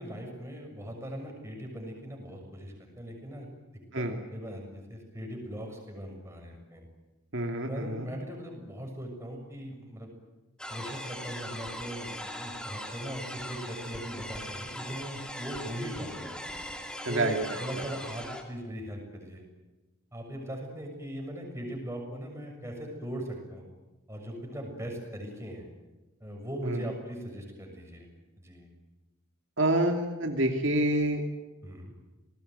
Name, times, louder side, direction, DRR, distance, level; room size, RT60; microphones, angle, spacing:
voice 1, 0.0-3.5 3.9-6.9 7.6-10.1 10.7-16.4 17.1-19.4 20.1-23.7 24.1-25.7 26.2-28.1 28.4-28.7 31.6-31.9, equal, 15° right, 2 dB, 6.7 m, -39 dB
voice 2, 7.3-8.1 17.0-17.6 26.6-26.8 29.6-31.2, right 1 dB, 60° right, 3 dB, 2.5 m, -27 dB
sound 1, 10.6-18.4, equal, 5° left, 2.9 m, -40 dB
28.5 x 20.0 x 9.4 m, 1.1 s
head